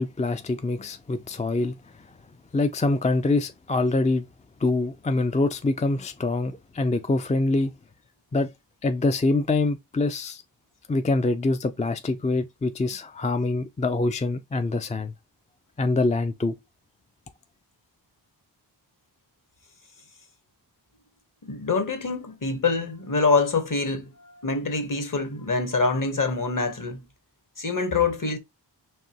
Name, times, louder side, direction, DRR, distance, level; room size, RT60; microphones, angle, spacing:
voice 1, 0.0-2.0 2.5-4.3 4.6-7.7 8.3-8.5 8.8-10.4 10.9-15.1 15.8-16.5, left 2 dB, 20° left, 0.3 m, -25 dB
voice 2, 21.4-27.0 27.6-28.4, left 4 dB, 45° left, 1.1 m, -25 dB
4.7 x 2.8 x 2.8 m
wide cardioid pair, 70°, 43 cm